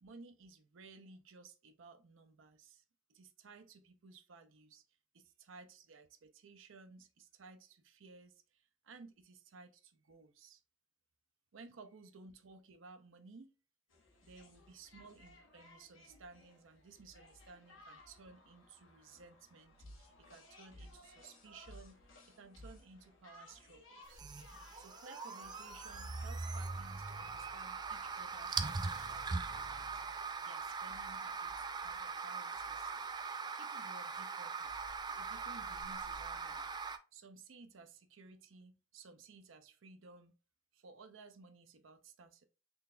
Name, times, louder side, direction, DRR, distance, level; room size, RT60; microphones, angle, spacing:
voice 1, 0.0-2.8 3.1-4.8 5.1-10.6 11.5-13.5 14.2-24.2 24.8-30.0 30.4-32.9 33.5-34.8 35.2-36.7 37.1-40.3 40.7-42.5, right 4 dB, 80° right, 0.6 m, -57 dB
sound 1, 13.9-33.5, left 1 dB, 80° left, 1.1 m, -59 dB
sound 2, 24.0-37.0, right 4 dB, 20° right, 0.3 m, -41 dB
3.8 x 3.3 x 2.5 m
head